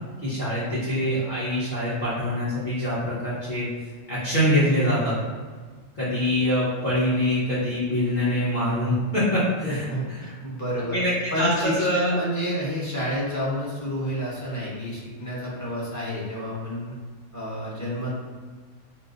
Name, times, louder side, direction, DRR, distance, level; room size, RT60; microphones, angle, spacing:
voice 1, 0.2-3.7 4.1-5.2 6.0-9.9 10.9-12.1, equal, 40° left, -12 dB, 1.1 m, -24 dB
voice 2, 9.6-11.0 11.3-16.9 17.3-18.2, equal, 15° left, -7 dB, 0.7 m, -29 dB
4.6 x 2.0 x 2.5 m, 1.5 s
omnidirectional pair, 1.3 m